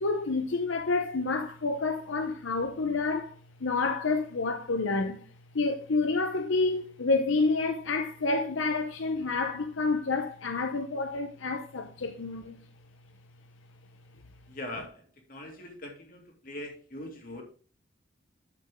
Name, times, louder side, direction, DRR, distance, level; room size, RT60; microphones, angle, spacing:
voice 1, 0.0-3.3 3.6-5.2 5.5-12.6, left 3 dB, 80° left, 0.7 m, -29 dB
voice 2, 14.5-17.4, left 1 dB, 45° left, 2.3 m, -41 dB
10.5 x 6.7 x 3.6 m
head